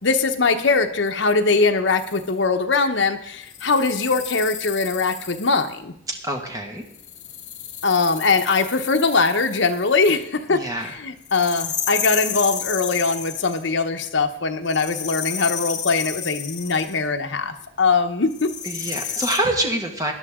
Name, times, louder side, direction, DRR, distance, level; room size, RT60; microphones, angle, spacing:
voice 1, 0.0-5.9 7.8-18.5, left 4 dB, 70° left, 5 dB, 1.0 m, -21 dB
sound 1, 2.0-2.3 3.5-5.7 6.9-10.1 11.3-13.7 14.7-17.0 18.3-19.4, left 9 dB, 40° left, 1.1 m, -32 dB
voice 2, 6.1-6.8 10.5-10.9 18.6-20.1, right 1 dB, 20° right, 2 dB, 1.7 m, -26 dB
18.5 x 11.0 x 3.7 m, 0.72 s
head